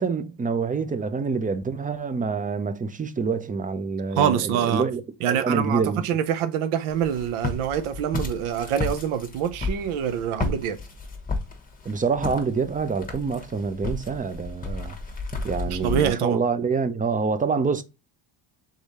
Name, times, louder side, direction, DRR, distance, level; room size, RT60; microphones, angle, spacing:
voice 1, 0.0-6.1 11.9-15.0 15.4-17.8, right 5 dB, 20° right, 0.4 m, -26 dB
voice 2, 4.2-4.8 5.2-10.8 15.6-16.4, right 9 dB, 80° right, 0.7 m, -25 dB
Walk footsteps, 6.9-16.1, left 3 dB, 15° left, 1.0 m, -33 dB
3.6 x 3.4 x 4.1 m
cardioid pair, 90°, 50 cm